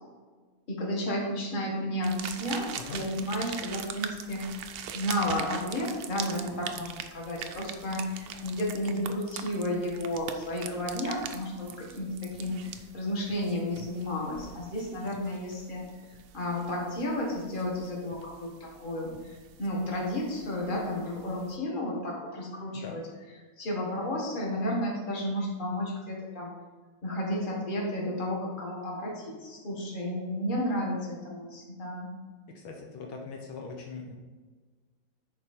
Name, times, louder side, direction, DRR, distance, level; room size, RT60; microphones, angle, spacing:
voice 1, 0.7-4.5 4.9-12.6 12.9-15.9 16.3-23.0 23.6-26.5 27.0-32.1, left 1 dB, 25° left, -2 dB, 1.7 m, -32 dB
sound 1, 2.0-21.6, right 8 dB, 85° right, 0.8 m, -43 dB
voice 2, 32.5-34.2, left 4 dB, 75° left, 1 dB, 1.6 m, -41 dB
10.5 x 4.5 x 4.3 m, 1.4 s
omnidirectional pair, 2.3 m